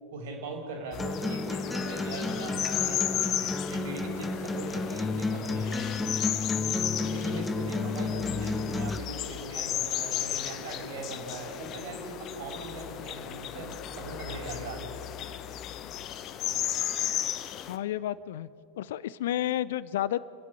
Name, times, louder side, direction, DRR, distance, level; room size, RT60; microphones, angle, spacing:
voice 1, 0.1-5.8 6.6-14.9, right 2 dB, 55° right, 2 dB, 4.7 m, -40 dB
sound 1, 0.9-17.8, left 11 dB, 35° left, 0.9 m, -34 dB
Acoustic guitar, 1.0-9.0, left 3 dB, 10° left, 0.7 m, -32 dB
voice 2, 17.7-18.5 18.8-20.2, left 13 dB, 55° left, 19 dB, 0.5 m, -31 dB
29.5 x 11.0 x 8.1 m, 2.8 s
figure-of-eight pair, 90°, 0 cm